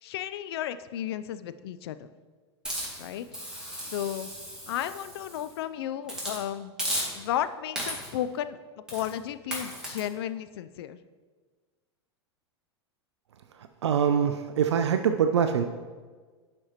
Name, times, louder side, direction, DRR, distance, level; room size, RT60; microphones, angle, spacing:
voice 1, 0.0-2.1 3.0-3.3 3.8-4.3 4.7-6.7 7.2-8.6 8.9-11.0, left 11 dB, 60° left, 13 dB, 0.4 m, -33 dB
Hiss, 2.7-5.5 6.1-6.4 6.8-7.4 7.8-8.2 8.9-9.1 9.5-10.0, equal, 5° right, 2.2 m, -35 dB
voice 2, 13.8-15.6, right 7 dB, 75° right, 7 dB, 0.4 m, -24 dB
11.0 x 4.3 x 2.9 m, 1.5 s
hypercardioid pair, 95°, 15 cm